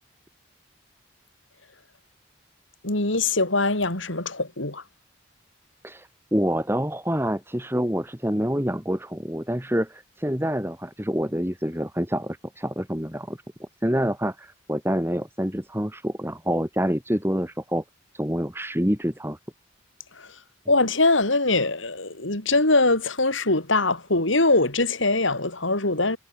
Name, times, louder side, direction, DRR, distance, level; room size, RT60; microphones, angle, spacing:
voice 1, 2.8-4.8 20.1-20.4 20.7-26.2, left 2 dB, 80° left, 4.8 m, -22 dB
voice 2, 5.8-17.8 18.1-19.4, equal, 10° right, 3.3 m, -27 dB
head